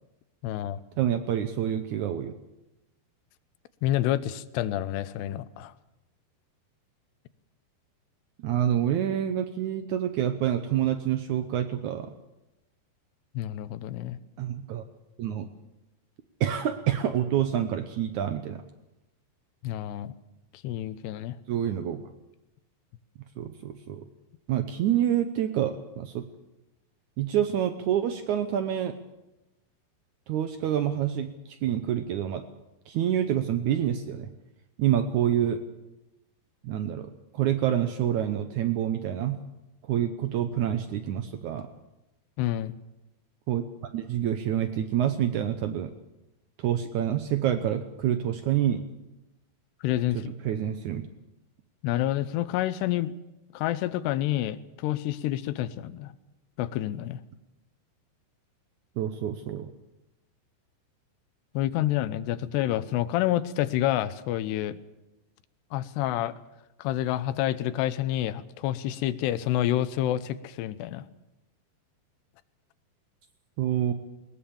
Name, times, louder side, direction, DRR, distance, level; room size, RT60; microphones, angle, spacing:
voice 1, 0.4-0.8 3.8-5.7 13.3-14.2 19.6-20.1 20.5-21.4 42.4-42.7 49.8-50.3 51.8-53.1 53.5-56.1 56.6-57.2 61.5-64.8 65.7-66.3 66.8-71.1, left 13 dB, 85° left, 13 dB, 3.0 m, -28 dB
voice 2, 1.0-2.3 8.4-12.1 14.4-14.8 15.2-15.5 16.4-18.6 21.5-22.0 23.4-24.0 24.5-26.2 27.2-28.9 30.3-32.4 32.9-34.3 34.8-35.6 36.6-37.1 37.3-39.4 39.9-41.7 43.5-43.6 43.9-45.9 46.6-48.8 50.1-51.1 59.0-59.7 73.6-73.9, right 10 dB, 85° right, 9 dB, 1.7 m, -27 dB
21.5 x 20.5 x 7.1 m, 0.95 s
omnidirectional pair, 4.8 m